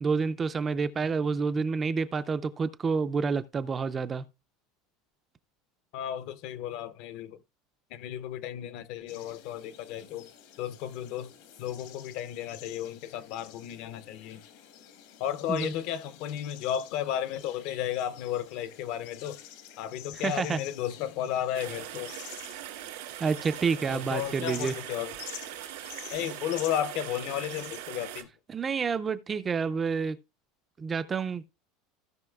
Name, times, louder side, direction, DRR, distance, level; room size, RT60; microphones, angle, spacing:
voice 1, 0.0-4.2 15.5-15.7 20.2-20.6 23.2-24.7 28.5-30.2 30.8-31.5, right 5 dB, 15° right, 0.3 m, -29 dB
voice 2, 5.9-7.4 7.9-10.3 10.6-11.3 11.6-14.4 15.2-19.4 19.8-22.2 23.9-25.2 26.1-28.3, left 10 dB, 50° left, 0.6 m, -33 dB
sound 1, 9.1-27.8, left 10 dB, 65° left, 1.3 m, -49 dB
sound 2, 21.5-28.2, right 14 dB, 85° right, 2.3 m, -41 dB
16.0 x 5.6 x 2.3 m
cardioid pair, 175°, 0 cm